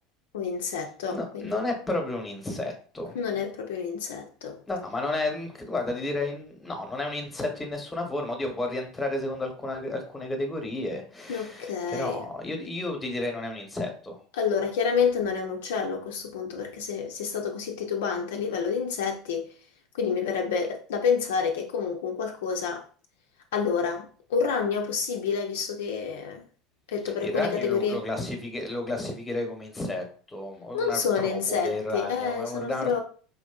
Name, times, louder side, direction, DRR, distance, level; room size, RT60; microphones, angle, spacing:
voice 1, 0.3-1.5 3.1-4.6 11.3-12.2 14.3-19.5 19.9-22.8 23.5-26.4 26.9-28.0 30.7-33.0, left 6 dB, 70° left, 0.4 m, -28 dB
voice 2, 1.1-3.2 4.7-14.2 27.2-33.0, left 2 dB, 15° left, 0.9 m, -32 dB
4.2 x 2.5 x 2.3 m
figure-of-eight pair, 70°, 0 cm